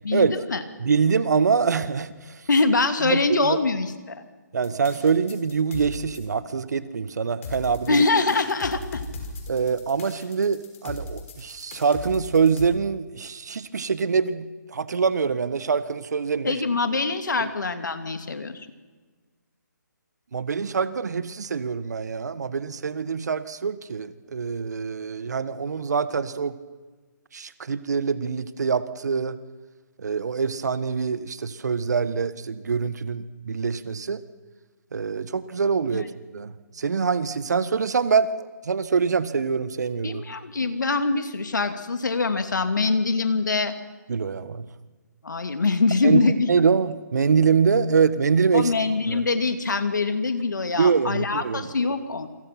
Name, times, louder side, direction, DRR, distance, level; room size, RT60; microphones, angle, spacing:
voice 1, 0.0-0.6 2.5-4.2 7.9-9.0 16.4-18.7 35.9-36.0 40.0-43.7 45.2-46.5 48.5-52.3, left 3 dB, 75° left, 9 dB, 2.6 m, -24 dB
voice 2, 0.8-2.4 3.0-3.6 4.5-8.0 9.5-16.6 17.4-17.5 20.3-26.6 27.3-29.4 30.0-34.2 34.9-38.3 38.6-40.2 44.1-44.7 46.0-46.2 46.5-48.7 49.1-49.2 50.8-51.7, right 5 dB, 60° right, 14 dB, 1.6 m, -24 dB
sound 1, 4.6-6.2 7.4-12.7, left 3 dB, 45° left, 6.0 m, -38 dB
28.0 x 24.5 x 6.0 m, 1.4 s
figure-of-eight pair, 145°, 10 cm